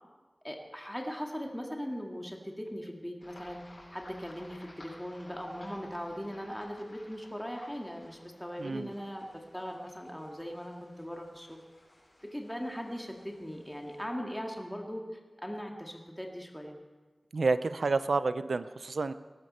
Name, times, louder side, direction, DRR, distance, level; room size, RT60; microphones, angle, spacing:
voice 1, 0.4-9.3 9.5-11.6 12.2-16.8, equal, 5° left, 1 dB, 2.1 m, -39 dB
sound 1, 3.2-14.0, left 1 dB, 55° left, 6.4 m, -57 dB
voice 2, 8.6-8.9 17.3-19.1, right 3 dB, 85° right, 13 dB, 0.5 m, -29 dB
19.0 x 13.0 x 4.3 m, 1.3 s
wide cardioid pair, 55°, 0 cm